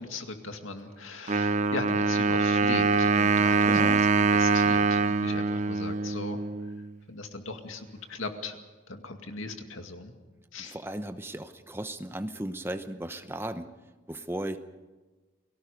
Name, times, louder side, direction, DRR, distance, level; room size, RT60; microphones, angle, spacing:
voice 1, 0.0-6.4 7.1-8.6 8.9-10.1 10.5-10.8, left 3 dB, 80° left, 5 dB, 2.2 m, -38 dB
Wind instrument woodwind instrument, 1.3-6.9, right 4 dB, 35° right, 0.8 m, -24 dB
voice 2, 3.7-4.1 10.6-13.7 14.1-14.6, right 1 dB, 10° right, 9 dB, 0.9 m, -35 dB
29.0 x 18.5 x 5.2 m, 1.2 s
head